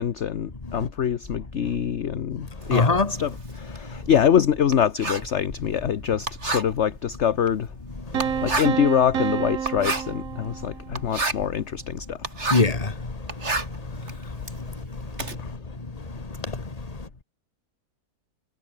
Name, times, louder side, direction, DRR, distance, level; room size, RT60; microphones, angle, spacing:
voice 1, 0.0-2.9 3.2-7.7 8.4-12.2 15.4-15.5, left 9 dB, 50° left, 1.2 m, -24 dB
Writing, 2.6-12.8 13.2-15.3, right 3 dB, 45° right, 3.7 m, -31 dB
voice 2, 2.7-3.1 8.2-8.4 12.5-15.5 15.8-17.1, left 3 dB, 25° left, 1.9 m, -27 dB
sound 1, 8.1-11.0, right 8 dB, 60° right, 1.6 m, -29 dB
omnidirectional pair, 1.6 m